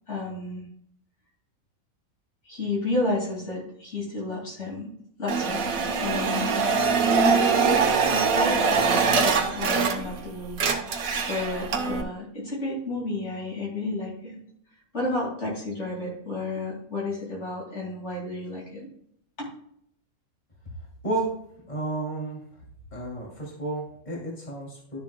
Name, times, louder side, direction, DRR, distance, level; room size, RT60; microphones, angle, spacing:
voice 1, 0.1-0.6 2.4-4.9 5.2-5.6 6.0-6.7 7.2-9.0 9.5-10.6 11.1-14.4 14.9-18.9 19.4-19.5, left 2 dB, 50° left, -4 dB, 2.6 m, -31 dB
sound 1, 5.3-10.2 10.5-12.0, right 5 dB, 75° right, 1.4 m, -23 dB
voice 2, 21.7-22.4 22.9-25.0, right 2 dB, 30° left, -3 dB, 2.7 m, -31 dB
12.5 x 7.0 x 2.2 m, 0.70 s
omnidirectional pair, 1.5 m